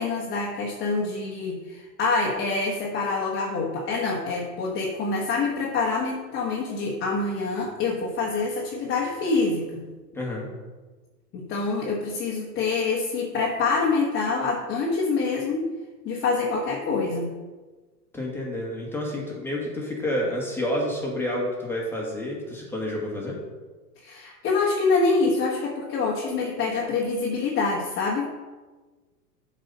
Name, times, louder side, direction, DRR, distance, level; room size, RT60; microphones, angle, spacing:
voice 1, 0.0-9.8 11.3-15.7 16.0-17.3 24.0-28.3, left 4 dB, 25° left, -3 dB, 1.0 m, -26 dB
voice 2, 10.1-10.5 18.1-23.4, left 1 dB, 5° left, -3 dB, 1.6 m, -29 dB
7.9 x 4.2 x 5.4 m, 1.3 s
hypercardioid pair, 130°, 49 cm